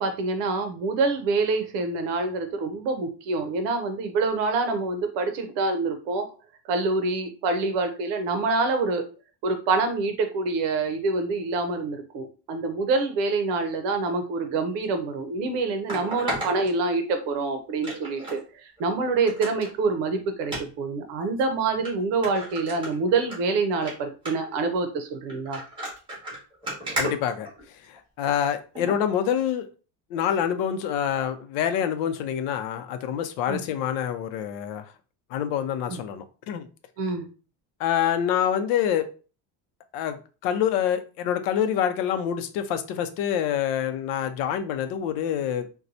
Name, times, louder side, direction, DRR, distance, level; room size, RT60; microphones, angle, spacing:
voice 1, 0.0-6.3 6.7-9.0 9.4-25.6 33.5-33.6 35.9-36.0 37.0-37.3, right 3 dB, 65° right, 0.7 m, -26 dB
sound 1, 14.8-14.9 15.9-17.3 17.8-18.4 18.8-18.9 19.3-19.7 20.4-20.6 21.4-21.5 21.9-22.0 22.2-23.4 23.7-23.9 24.3-24.6 25.3-28.0 28.8-29.0 29.5-29.6, right 1 dB, 10° right, 1.5 m, -33 dB
voice 2, 27.0-27.5 28.2-29.7 30.1-34.8 35.3-36.7 37.8-39.0 39.9-45.7, left 9 dB, 80° left, 0.7 m, -26 dB
4.3 x 2.3 x 2.6 m
cardioid pair, 160°, 47 cm